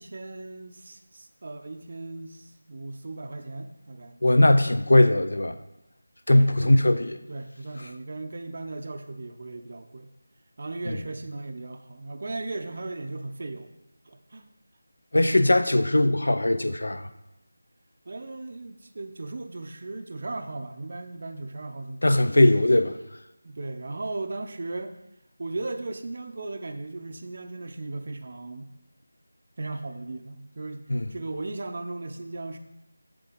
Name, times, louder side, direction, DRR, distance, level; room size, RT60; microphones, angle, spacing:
voice 1, 0.0-4.2 6.3-7.0 7.3-10.1 10.6-13.7 14.0-14.5 18.1-22.3 23.4-25.0 25.4-28.7 29.6-30.8 31.1-32.6, right 2 dB, 45° right, 6 dB, 0.5 m, -37 dB
voice 2, 4.2-5.5 6.3-7.2 15.1-17.1 22.0-23.0 30.9-31.0, left 1 dB, 80° left, 10 dB, 0.5 m, -20 dB
7.6 x 3.8 x 5.0 m, 0.93 s
figure-of-eight pair, 175°, 0 cm